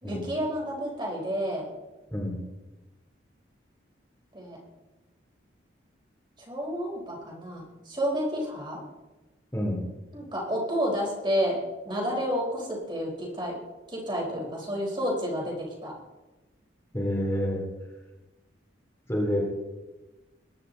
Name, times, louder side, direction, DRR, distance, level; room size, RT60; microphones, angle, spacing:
voice 1, 0.0-1.7 4.3-4.6 6.4-8.8 10.1-13.6 13.9-15.9, equal, 25° right, -2 dB, 4.1 m, -30 dB
voice 2, 16.9-17.6 19.1-19.4, equal, 15° left, -2 dB, 3.0 m, -28 dB
22.0 x 11.0 x 3.9 m, 1.1 s
head